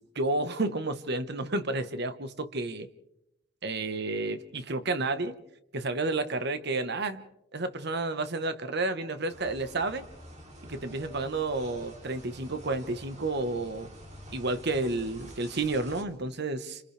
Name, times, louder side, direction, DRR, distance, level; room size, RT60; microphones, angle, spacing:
voice 1, 0.1-2.9 3.6-5.4 5.7-7.2 7.5-10.0 10.7-13.9 14.3-16.8, right 2 dB, 60° right, 10 dB, 1.3 m, -31 dB
sound 1, 9.3-16.0, right 1 dB, 40° right, 3.1 m, -48 dB
29.5 x 27.0 x 3.4 m, 0.84 s
head